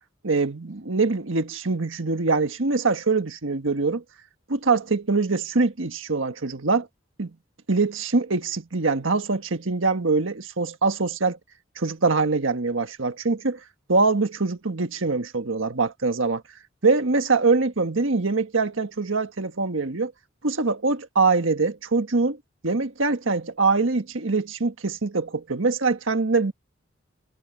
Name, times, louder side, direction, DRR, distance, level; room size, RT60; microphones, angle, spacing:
voice 1, 0.2-4.0 4.5-6.9 7.2-7.3 7.7-11.4 11.8-13.6 13.9-16.4 16.8-20.1 20.4-22.4 22.6-26.5, right 3 dB, 85° right, 1.5 m, -23 dB
head